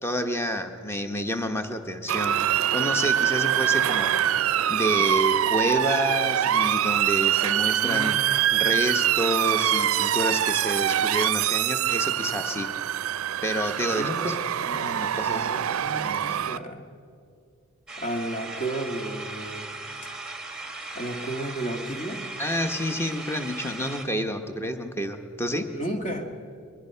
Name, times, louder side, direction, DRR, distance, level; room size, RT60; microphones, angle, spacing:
voice 1, 0.0-4.1 4.7-12.7 13.4-14.3 14.7-15.5 16.0-16.3 22.4-25.7, equal, 10° left, 7 dB, 1.0 m, -29 dB
Motor vehicle (road) / Siren, 2.1-16.6, right 10 dB, 85° right, 0.4 m, -24 dB
voice 2, 7.8-8.5 14.0-14.3 14.6-15.0 15.3-16.9 18.0-19.7 20.9-22.3 25.7-26.3, right 1 dB, 40° left, 4 dB, 1.8 m, -33 dB
sound 1, 17.9-24.1, right 3 dB, 5° right, 1.3 m, -38 dB
21.5 x 21.5 x 5.7 m, 2.3 s
head